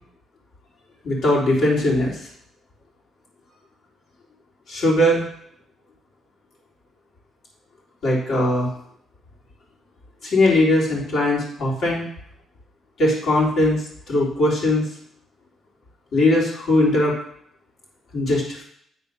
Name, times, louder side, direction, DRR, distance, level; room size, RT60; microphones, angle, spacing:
voice 1, 1.0-2.2 4.7-5.2 8.0-8.7 10.2-12.0 13.0-14.9 16.1-17.1 18.1-18.6, left 1 dB, 70° left, -4 dB, 3.3 m, -20 dB
9.4 x 4.4 x 5.4 m, 0.69 s
cardioid pair, 90°, 0 cm